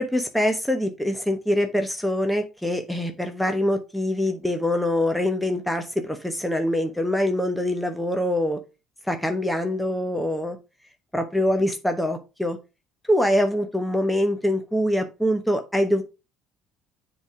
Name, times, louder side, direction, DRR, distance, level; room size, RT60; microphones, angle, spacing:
voice 1, 0.0-8.6 9.1-10.6 11.1-12.6 13.1-16.0, left 1 dB, ahead, 5 dB, 1.1 m, -24 dB
7.1 x 3.5 x 4.8 m, 0.29 s
supercardioid pair, 80°, 0 cm